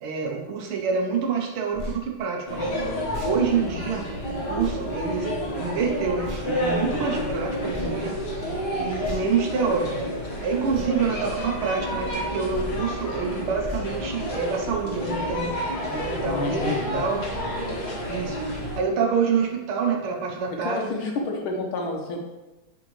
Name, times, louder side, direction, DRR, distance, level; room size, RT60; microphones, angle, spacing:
voice 1, 0.0-2.7 3.2-8.2 8.8-10.0 10.4-17.3 18.1-20.8, right 5 dB, 85° right, 2 dB, 1.8 m, -27 dB
sound 1, 1.7-2.0 3.1-3.4 4.6-4.8 6.2-6.5 7.7-7.9 9.0-9.4 10.7-10.9 12.5-12.8 13.6-13.9, left 1 dB, 40° right, 0.6 m, -35 dB
sound 2, 2.5-18.8, equal, 55° left, 2.1 m, -30 dB
voice 2, 16.1-17.0 20.6-22.2, left 3 dB, 75° left, 1 dB, 1.8 m, -29 dB
6.2 x 4.9 x 3.1 m, 1.0 s
omnidirectional pair, 2.3 m